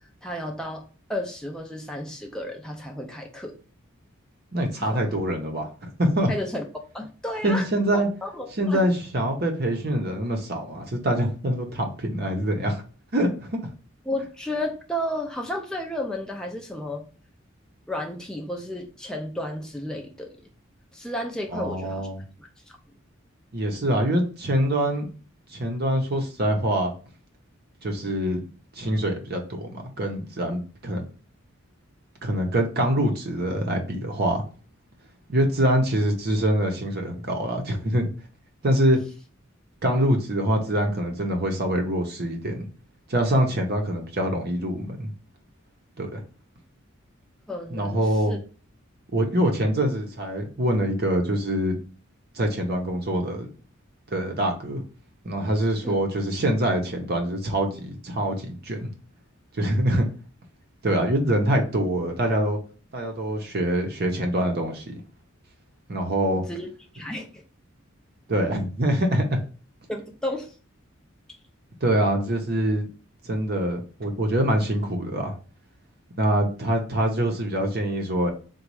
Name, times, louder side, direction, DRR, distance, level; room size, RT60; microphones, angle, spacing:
voice 1, 0.2-0.8 1.1-3.5 4.8-5.2 6.3-6.6 6.9-7.7 7.9-8.8 14.1-17.1 17.9-20.5 20.9-22.1 22.4-22.8 47.5-48.4 55.8-56.0 66.3-67.4 69.9-70.5, left 1 dB, 5° left, 1 dB, 0.5 m, -33 dB
voice 2, 4.5-6.3 7.4-8.1 8.6-12.8 13.1-13.6 21.5-22.2 23.5-25.1 25.5-26.9 27.8-28.4 28.7-31.0 32.2-34.4 35.3-38.1 38.6-39.0 39.8-42.7 43.1-45.1 46.0-46.2 47.7-48.4 49.1-51.8 52.3-53.5 54.1-54.8 55.2-58.9 59.5-60.1 60.8-62.6 62.9-64.9 65.9-66.4 68.3-69.4 71.8-72.9 73.2-75.4 76.2-78.3, right 1 dB, 45° right, 3 dB, 0.8 m, -24 dB
4.0 x 2.3 x 4.6 m, 0.38 s
head